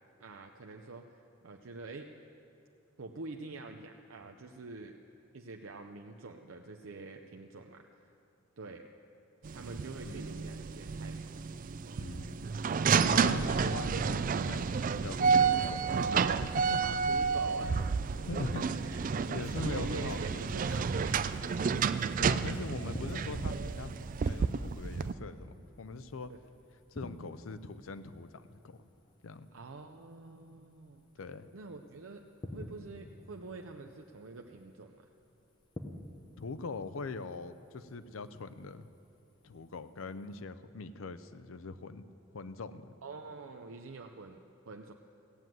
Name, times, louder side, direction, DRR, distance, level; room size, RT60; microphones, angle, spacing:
voice 1, 0.2-2.1 3.0-5.0 5.3-8.0 8.6-8.8 9.5-11.2 13.4-13.7 16.8-17.8 18.7-19.1 19.4-21.3 26.3-26.4 29.5-31.1 31.5-35.1 43.0-44.4 44.7-44.9, right 3 dB, 85° right, 3 dB, 0.6 m, -46 dB
sound 1, 9.4-25.1, right 5 dB, 40° right, 0.4 m, -30 dB
voice 2, 12.0-12.4 13.1-16.0 16.4-16.8 18.3-18.7 19.0-20.4 22.2-26.3 26.9-28.8 29.2-29.5 31.2-31.5 36.4-38.9 39.4-42.0 42.3-42.9, left 3 dB, 85° left, 13 dB, 0.6 m, -42 dB
Squeak, 19.4-19.6 20.1-20.2 20.7-20.8 21.3-21.4 22.0-22.1 22.5-22.6 23.1-23.2 23.6-23.8 24.2-24.3, left 3 dB, 55° left, 2.6 m, -60 dB
sound 2, 22.8-40.4, left 1 dB, 25° left, 0.9 m, -51 dB
16.0 x 7.6 x 9.3 m, 2.7 s
head